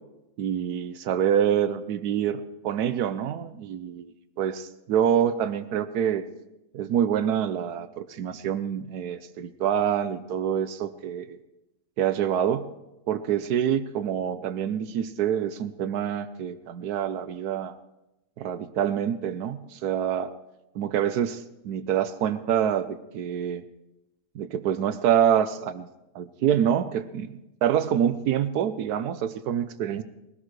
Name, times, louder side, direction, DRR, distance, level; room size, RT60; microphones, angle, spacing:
voice 1, 0.4-4.1 4.4-6.2 6.7-11.4 12.0-12.7 13.1-17.8 18.4-20.3 20.7-23.6 24.3-25.9 26.1-30.0, right 9 dB, 85° right, 11 dB, 1.2 m, -26 dB
22.0 x 17.0 x 3.2 m, 0.93 s
omnidirectional pair, 1.6 m